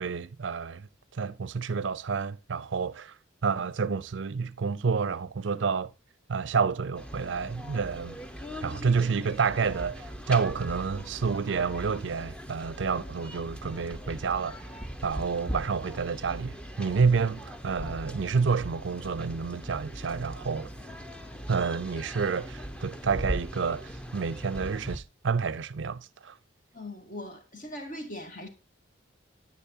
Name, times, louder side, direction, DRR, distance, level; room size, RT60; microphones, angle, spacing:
voice 1, 0.0-3.2 3.4-5.9 6.3-8.2 8.6-20.7 21.5-26.4, right 5 dB, 70° right, 0.5 m, -29 dB
sound 1, 6.9-25.0, equal, 5° left, 0.9 m, -40 dB
voice 2, 26.7-28.5, left 1 dB, 45° left, 2.2 m, -40 dB
10.0 x 9.5 x 2.7 m
head